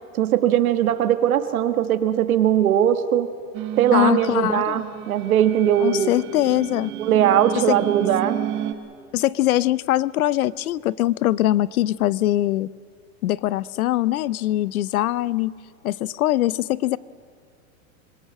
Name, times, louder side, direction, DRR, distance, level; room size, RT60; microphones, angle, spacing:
voice 1, 0.1-3.3 3.8-6.1 7.0-8.4, right 10 dB, 85° right, 10 dB, 1.6 m, -20 dB
sound 1, 3.5-8.7, right 11 dB, 25° right, 1.1 m, -31 dB
voice 2, 3.9-4.8 5.8-6.9 7.5-7.8 9.1-12.7 13.2-15.5 15.8-17.0, left 14 dB, 90° left, 21 dB, 0.7 m, -22 dB
26.0 x 17.5 x 7.7 m, 2.3 s
supercardioid pair, 160°, 42 cm